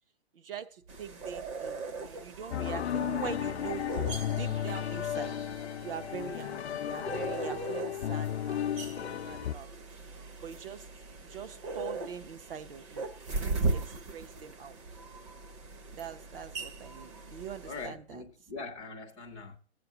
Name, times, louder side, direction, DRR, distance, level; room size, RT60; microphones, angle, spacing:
voice 1, 0.3-5.4 5.8-9.7 10.4-10.9 11.2-14.8 15.9-18.2, right 7 dB, 55° right, 0.9 m, -43 dB
sound 1, 0.9-17.9, right 3 dB, 25° right, 0.8 m, -39 dB
sound 2, 2.5-9.5, left 10 dB, 70° left, 0.5 m, -34 dB
voice 2, 17.7-19.6, left 4 dB, ahead, 0.4 m, -42 dB
17.0 x 7.7 x 2.8 m
hypercardioid pair, 150°, 34 cm